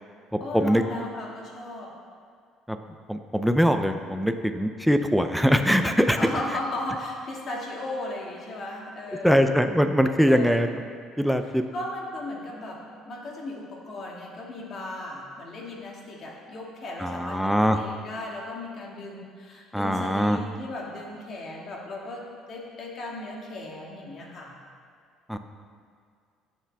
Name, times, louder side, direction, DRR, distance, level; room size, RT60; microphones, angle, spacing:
voice 1, 0.4-1.9 6.1-9.5 10.3-10.7 11.7-12.8 13.0-24.6, left 1 dB, 40° left, -2 dB, 2.0 m, -36 dB
voice 2, 3.1-6.2 9.2-10.7 11.2-11.6 17.0-17.8 19.7-20.4 25.3-25.4, equal, ahead, 6 dB, 0.5 m, -22 dB
14.5 x 7.4 x 3.5 m, 2.1 s
cardioid pair, 135°, 0 cm